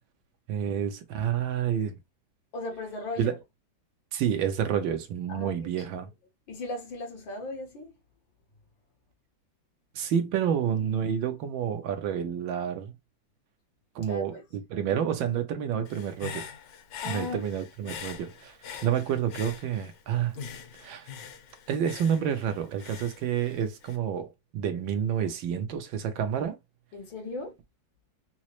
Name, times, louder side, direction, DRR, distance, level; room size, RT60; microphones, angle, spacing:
voice 1, 0.5-2.0 3.2-3.4 4.1-6.1 9.9-12.9 13.9-16.4 17.0-18.6 18.8-20.4 20.8-21.1 21.7-26.6, right 8 dB, 85° right, 1.6 m, -29 dB
voice 2, 2.5-3.4 5.3-5.9 6.5-7.9 14.1-14.4 17.0-17.4 26.9-27.5, left 2 dB, 90° left, 2.3 m, -37 dB
Human voice / Breathing, 15.8-20.0 20.3-24.0, left 7 dB, 65° left, 1.2 m, -43 dB
5.3 x 2.0 x 3.0 m
omnidirectional pair, 2.0 m